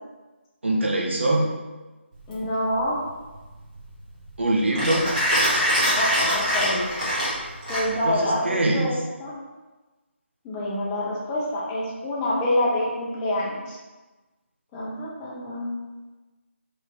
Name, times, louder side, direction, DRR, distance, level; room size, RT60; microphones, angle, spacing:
voice 1, 0.6-1.5 4.4-5.1 7.9-8.9, right 1 dB, 60° right, -1 dB, 0.7 m, -23 dB
Mechanisms, 2.1-8.2, equal, 30° right, 1.2 m, -25 dB
voice 2, 2.3-3.0 6.0-7.1 7.7-9.3 10.4-13.8 14.7-15.8, left 1 dB, 10° left, -6 dB, 0.4 m, -27 dB
3.2 x 2.5 x 2.9 m, 1.2 s
figure-of-eight pair, 155°, 7 cm